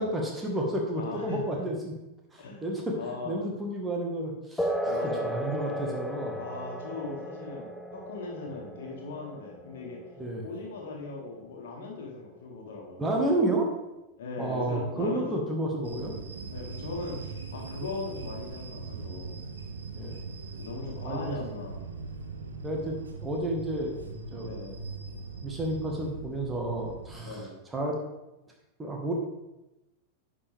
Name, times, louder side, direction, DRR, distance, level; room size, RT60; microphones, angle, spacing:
voice 1, 0.0-1.9 2.3-6.4 10.2-10.5 13.0-13.7 14.4-16.1 19.9-20.2 21.0-21.4 22.6-23.0 23.2-23.9 24.3-24.5 25.4-27.4 27.7-28.0 28.8-29.1, right 1 dB, 15° right, 0 dB, 1.5 m, -31 dB
voice 2, 0.9-1.6 2.4-2.6 3.0-3.4 4.8-5.4 6.4-10.0 10.4-13.4 14.2-15.4 16.5-19.4 20.6-21.8 24.4-24.8 27.2-27.6, left 3 dB, 60° left, 0 dB, 1.9 m, -39 dB
sound 1, 4.6-12.6, equal, 5° left, 0.8 m, -36 dB
sound 2, 15.8-27.2, right 3 dB, 70° right, 0.8 m, -40 dB
10.5 x 5.2 x 3.5 m, 0.98 s
figure-of-eight pair, 90°, 0 cm